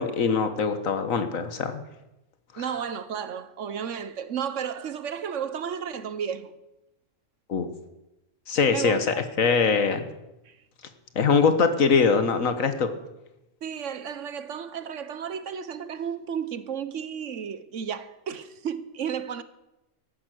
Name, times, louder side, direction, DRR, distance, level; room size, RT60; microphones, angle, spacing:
voice 1, 0.0-1.8 2.5-2.6 7.5-7.7 8.5-9.1 9.4-10.1 11.2-12.9, left 5 dB, 80° left, 1.7 m, -22 dB
voice 2, 2.6-6.6 8.7-9.0 10.5-10.6 13.6-19.4, right 7 dB, 65° right, 1.2 m, -33 dB
14.0 x 11.5 x 7.9 m
omnidirectional pair, 1.4 m